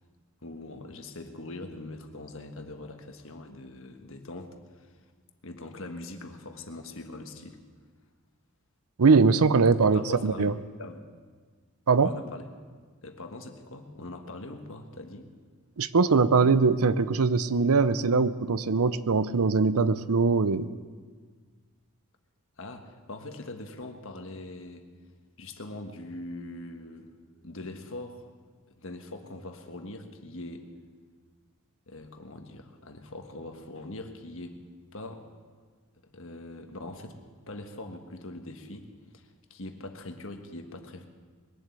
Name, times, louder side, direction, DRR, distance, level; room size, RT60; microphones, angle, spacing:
voice 1, 0.4-4.9 5.4-7.6 9.8-10.5 10.8-11.0 12.0-12.5 13.0-15.3 22.6-24.9 25.4-27.1 27.4-28.2 28.8-30.7 31.9-34.6 34.9-35.3 36.1-37.2 37.5-41.1, left 2 dB, 60° left, 5 dB, 1.4 m, -42 dB
voice 2, 9.0-10.5 11.9-12.1 15.8-20.7, right 4 dB, 75° right, 15 dB, 0.6 m, -22 dB
21.0 x 7.6 x 8.4 m, 1.5 s
head